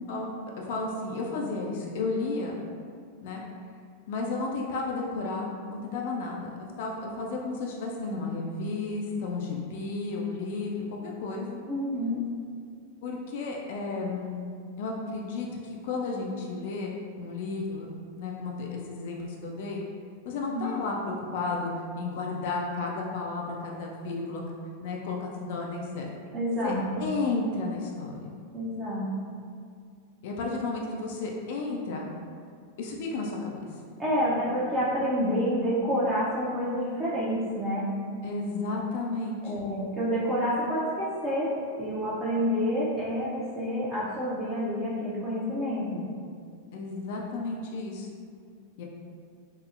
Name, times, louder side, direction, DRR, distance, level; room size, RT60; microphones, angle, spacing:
voice 1, 0.1-2.6 3.2-3.4 4.1-6.5 6.8-11.6 13.0-14.4 14.8-19.8 20.2-24.4 24.8-26.1 26.6-28.3 30.2-32.1 32.8-33.6 38.2-39.7 46.7-48.1 48.8-48.9, left 3 dB, 50° left, -1 dB, 0.3 m, -33 dB
voice 2, 11.7-12.2 20.5-20.7 26.3-27.0 28.5-29.3 34.0-37.9 39.4-46.0, equal, 20° right, -10 dB, 0.6 m, -28 dB
3.6 x 2.0 x 2.4 m, 2.2 s
figure-of-eight pair, 90°, 0 cm